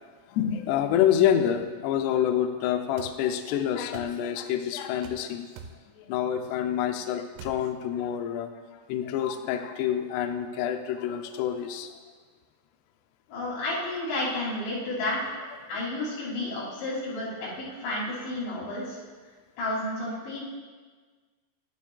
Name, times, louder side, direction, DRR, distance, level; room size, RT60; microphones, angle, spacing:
voice 1, 0.3-5.5 6.0-11.9 15.6-15.7, left 10 dB, 90° left, 6 dB, 2.3 m, -27 dB
sound 1, 3.0-3.2 3.9-4.2 5.0-5.2 5.6-5.8 7.4-7.6, right 6 dB, 90° right, 3.2 m, -43 dB
voice 2, 13.3-15.3 15.7-19.0 19.6-20.4, left 2 dB, 70° left, -7 dB, 5.2 m, -31 dB
11.5 x 11.5 x 2.3 m, 1.5 s
omnidirectional pair, 5.4 m